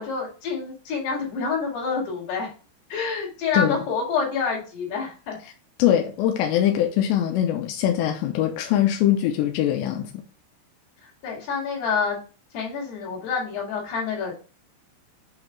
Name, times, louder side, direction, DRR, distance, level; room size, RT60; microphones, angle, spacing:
voice 1, 0.0-2.5 2.9-5.4 11.2-12.2 12.5-14.3, left 5 dB, 60° left, 4.3 m, -27 dB
voice 2, 5.8-10.2, left 11 dB, 80° left, 2.7 m, -22 dB
7.9 x 3.2 x 5.5 m
omnidirectional pair, 5.5 m